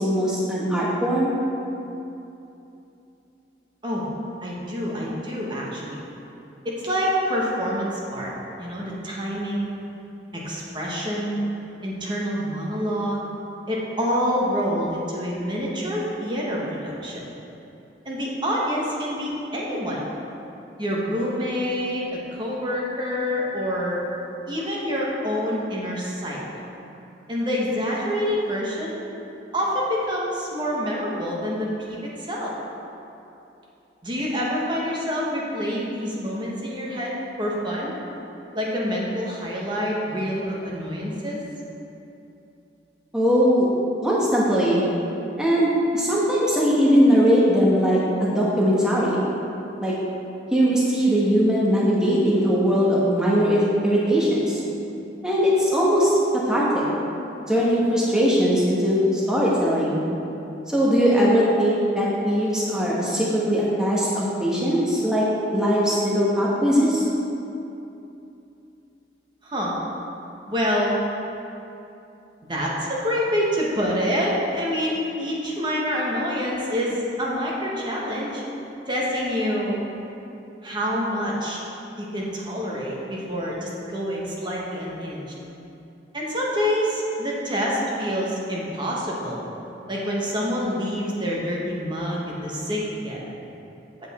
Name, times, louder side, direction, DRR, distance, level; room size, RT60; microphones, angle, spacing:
voice 1, 0.0-1.3 43.1-43.7 44.0-44.8 45.4-45.7 45.9-49.2 49.8-49.9 50.5-54.6 55.2-56.8 57.5-60.0 60.7-65.2 65.5-67.1, equal, 5° right, -7 dB, 1.1 m, -20 dB
voice 2, 4.4-6.0 6.6-8.3 8.6-9.7 10.3-11.4 11.8-13.2 13.7-17.2 18.0-20.0 20.8-24.0 24.5-26.4 27.3-29.0 29.5-32.5 34.0-37.9 38.5-41.4 69.4-69.7 70.5-70.9 72.5-78.4 78.9-79.8 80.6-81.6 82.0-85.2 86.1-89.4 89.9-93.2, equal, 25° right, -4 dB, 1.2 m, -27 dB
8.0 x 7.9 x 4.2 m, 2.8 s
head